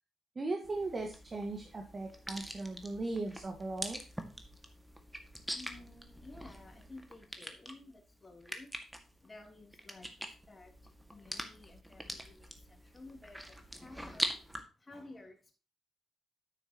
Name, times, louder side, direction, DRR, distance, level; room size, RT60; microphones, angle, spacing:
voice 1, 0.3-4.0, right 2 dB, 35° right, 1.8 m, -38 dB
sound 1, 0.6-14.6, equal, 10° right, 1.9 m, -44 dB
voice 2, 5.5-15.5, left 2 dB, 25° left, 3.2 m, -54 dB
10.0 x 8.9 x 3.0 m
hypercardioid pair, 40°, 0 cm